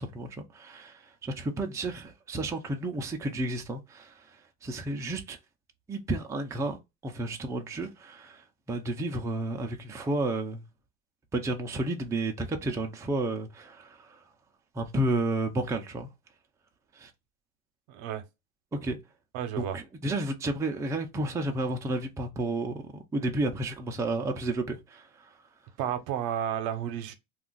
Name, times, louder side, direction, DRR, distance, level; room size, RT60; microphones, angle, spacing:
voice 1, 0.0-5.4 5.9-6.8 7.0-10.6 11.3-14.3 14.7-16.1 16.9-17.1 18.7-19.0 19.6-25.4, right 2 dB, 10° right, 0.4 m, -32 dB
voice 2, 17.9-18.2 19.3-19.8 25.8-27.1, right 9 dB, 65° right, 0.7 m, -32 dB
2.4 x 2.3 x 3.7 m
supercardioid pair, 110°, 32 cm